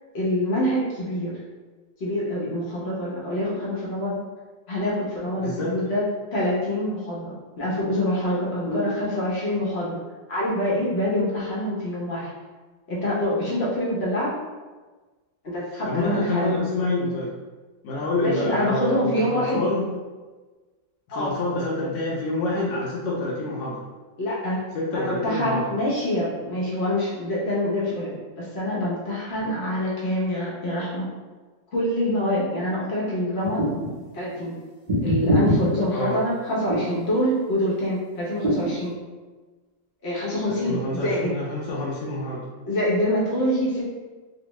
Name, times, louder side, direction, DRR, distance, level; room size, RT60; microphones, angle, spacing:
voice 1, 0.1-1.3 2.0-4.2 4.7-6.0 6.3-10.0 10.3-12.3 12.9-14.3 15.4-16.5 18.2-19.7 21.1-21.3 24.2-24.6 24.9-31.1 31.7-33.6 34.1-34.5 35.0-38.9 40.0-41.3 42.7-43.8, left 1 dB, 50° left, -6 dB, 0.8 m, -25 dB
voice 2, 5.4-5.9 8.7-8.9 15.8-17.3 17.8-19.9 21.1-23.8 24.7-25.8 35.9-36.2 40.4-42.4, left 2 dB, 80° left, -5 dB, 1.2 m, -27 dB
sound 1, 33.4-33.9 34.9-35.6 36.7-37.0 38.4-38.7, right 1 dB, 40° right, 0.5 m, -22 dB
3.3 x 2.2 x 3.0 m, 1.3 s
omnidirectional pair, 2.0 m